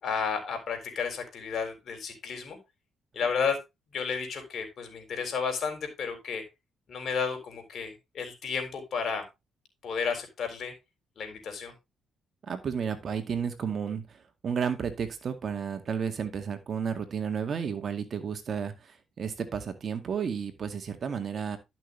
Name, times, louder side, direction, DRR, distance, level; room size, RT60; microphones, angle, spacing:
voice 1, 0.0-2.6 3.1-3.6 3.9-6.4 6.9-9.2 9.8-10.7 11.2-11.7, left 5 dB, 60° left, 5 dB, 3.9 m, -32 dB
voice 2, 12.5-14.0 14.4-18.7 19.2-21.6, right 7 dB, 50° right, 7 dB, 2.0 m, -32 dB
11.5 x 6.2 x 3.4 m, 0.23 s
cardioid pair, 90°, 0 cm